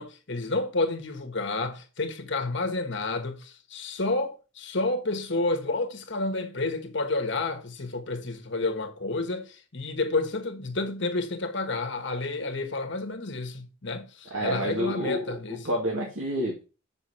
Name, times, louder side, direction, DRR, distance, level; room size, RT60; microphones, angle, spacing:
voice 1, 0.0-15.7, left 2 dB, 60° left, 1.4 m, -30 dB
voice 2, 14.3-16.6, equal, 70° right, 2.3 m, -29 dB
8.0 x 6.3 x 4.3 m
head